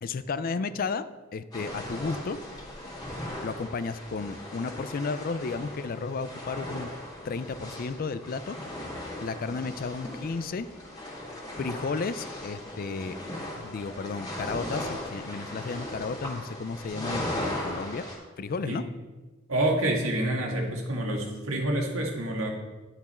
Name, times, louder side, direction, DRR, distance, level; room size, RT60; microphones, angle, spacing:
voice 1, 0.0-2.4 3.4-6.9 7.2-8.6 9.2-10.7 11.6-13.2 13.6-18.0 18.4-18.8, left 4 dB, 45° left, 14 dB, 0.4 m, -33 dB
sound 1, 1.5-18.2, left 1 dB, 20° left, 1.9 m, -38 dB
voice 2, 19.5-22.5, right 1 dB, 90° right, 0 dB, 1.7 m, -27 dB
10.5 x 6.0 x 4.3 m, 1.3 s
head